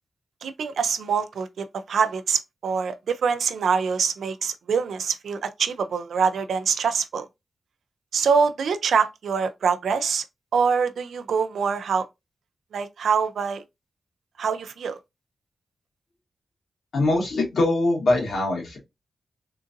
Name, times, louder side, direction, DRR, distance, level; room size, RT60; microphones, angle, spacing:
voice 1, 0.4-7.2 8.1-10.2 10.5-12.1 12.7-13.6 14.4-15.0, right 6 dB, 90° right, 0.5 m, -24 dB
voice 2, 16.9-18.8, left 2 dB, 75° left, 1.8 m, -22 dB
3.7 x 2.5 x 2.5 m
wide cardioid pair, 120°, 0 cm